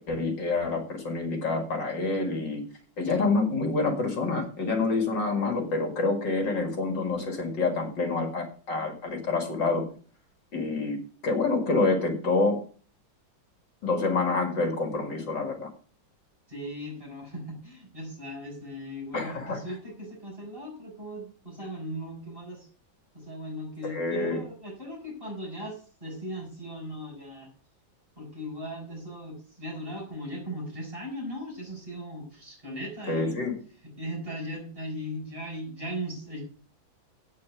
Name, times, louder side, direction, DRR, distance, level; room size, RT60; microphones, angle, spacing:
voice 1, 0.1-2.6 3.0-9.8 10.5-11.0 11.2-12.6 13.8-15.7 19.1-19.6 23.9-24.4 33.1-33.6, left 3 dB, 70° left, 4 dB, 2.6 m, -27 dB
voice 2, 16.5-22.7 23.1-27.5 28.2-33.4 33.8-36.4, equal, 30° right, -1 dB, 6.3 m, -38 dB
8.6 x 8.5 x 6.1 m, 0.41 s
omnidirectional pair, 2.0 m